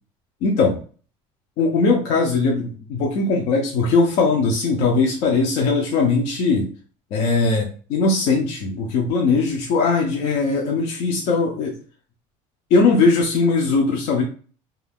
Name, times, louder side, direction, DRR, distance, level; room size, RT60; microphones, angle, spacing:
voice 1, 0.4-0.8 1.6-6.7 7.1-11.7 12.7-14.2, left 4 dB, 45° left, 0 dB, 0.5 m, -20 dB
2.3 x 2.3 x 3.4 m, 0.40 s
cardioid pair, 180°, 15 cm